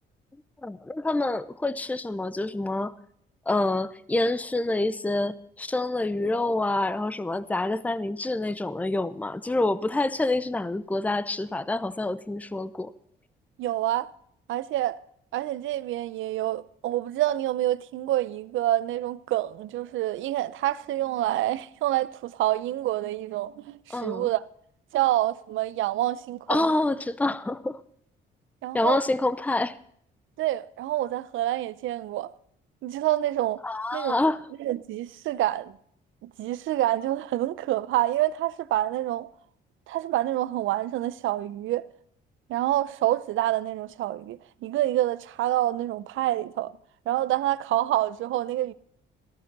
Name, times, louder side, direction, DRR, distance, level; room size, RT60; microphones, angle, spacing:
voice 1, 0.6-2.9 3.5-12.9 23.9-24.3 26.5-27.8 28.7-29.8 33.6-34.4, left 2 dB, 5° left, 0.6 m, -27 dB
voice 2, 13.6-14.1 14.5-15.0 15.3-24.4 24.9-26.7 28.6-29.0 30.4-32.3 32.8-33.6 33.9-34.2 34.6-35.8 36.2-39.3 39.9-41.8 42.5-46.7 47.1-48.7, right 14 dB, 80° right, 0.6 m, -27 dB
14.5 x 13.5 x 4.0 m
cardioid pair, 90°, 20 cm